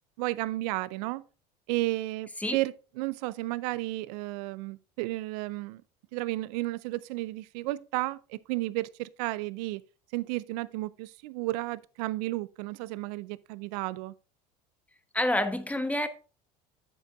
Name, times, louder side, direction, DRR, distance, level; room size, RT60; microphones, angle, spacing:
voice 1, 0.2-1.2 1.7-5.8 6.1-9.8 10.1-14.1, right 19 dB, 75° right, 0.5 m, -33 dB
voice 2, 15.1-16.1, left 1 dB, 5° left, 1.1 m, -27 dB
9.9 x 7.5 x 2.5 m
hypercardioid pair, 85°, 21 cm